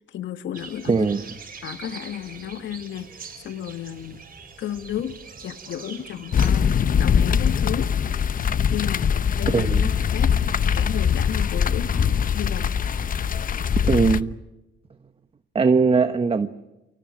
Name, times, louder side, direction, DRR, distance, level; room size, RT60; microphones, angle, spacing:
voice 1, 0.1-1.1 1.6-3.1 3.4-4.2 4.6-6.7 7.0-7.9 8.7-10.4 10.7-12.7, left 10 dB, 70° left, 10 dB, 1.4 m, -33 dB
sound 1, 0.5-6.5, right 5 dB, 45° right, 6.2 m, -43 dB
voice 2, 0.8-1.2 9.5-9.9 13.8-14.3 15.5-16.5, right 4 dB, 30° right, 10 dB, 1.2 m, -20 dB
sound 2, 6.3-14.2, left 7 dB, 45° left, 0.8 m, -22 dB
29.0 x 24.5 x 6.1 m, 0.98 s
cardioid pair, 90°, 20 cm